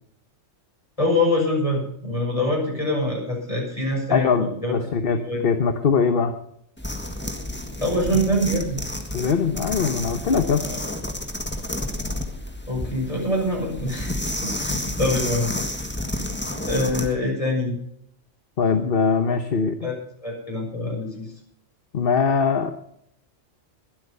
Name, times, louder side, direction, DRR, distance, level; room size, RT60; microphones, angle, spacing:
voice 1, 1.0-4.8 5.1-5.4 7.8-8.8 10.6-10.8 12.7-15.5 16.6-17.7 19.8-19.9 20.2-21.3, left 1 dB, 25° left, -1 dB, 6.3 m, -24 dB
voice 2, 4.1-6.3 9.1-10.7 18.6-19.9 21.9-22.7, left 5 dB, 50° left, 8 dB, 1.2 m, -22 dB
sound 1, 6.8-17.1, left 1 dB, 10° left, 1.6 m, -30 dB
22.0 x 8.4 x 5.4 m, 0.71 s
omnidirectional pair, 1.3 m